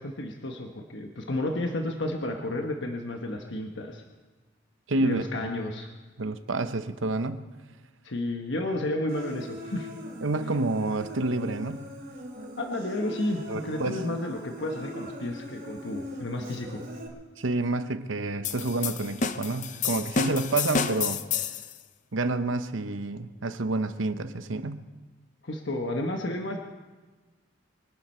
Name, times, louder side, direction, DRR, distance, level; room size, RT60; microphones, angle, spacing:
voice 1, 0.0-4.0 5.0-5.9 8.0-9.9 12.6-16.8 25.4-26.6, left 1 dB, 65° left, 1.2 m, -32 dB
voice 2, 4.9-5.7 6.2-7.4 10.2-11.9 13.5-14.0 17.4-21.2 22.1-24.8, right 2 dB, 75° right, 0.9 m, -29 dB
Human voice, 9.1-17.1, equal, 50° right, 2.7 m, -40 dB
sound 1, 18.4-21.7, left 6 dB, 40° left, 0.6 m, -30 dB
24.5 x 11.5 x 4.4 m
head